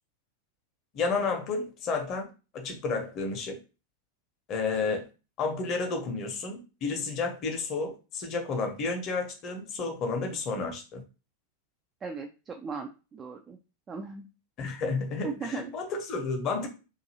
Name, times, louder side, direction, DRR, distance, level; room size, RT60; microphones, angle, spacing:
voice 1, 0.9-2.3 2.5-3.6 4.5-5.1 5.4-11.0 14.6-16.7, left 4 dB, 35° left, 4 dB, 0.7 m, -31 dB
voice 2, 12.0-13.6 13.9-14.3 15.2-15.7, right 5 dB, 20° right, 3 dB, 0.3 m, -37 dB
2.6 x 2.4 x 2.8 m, 0.32 s
figure-of-eight pair, 90°, 0 cm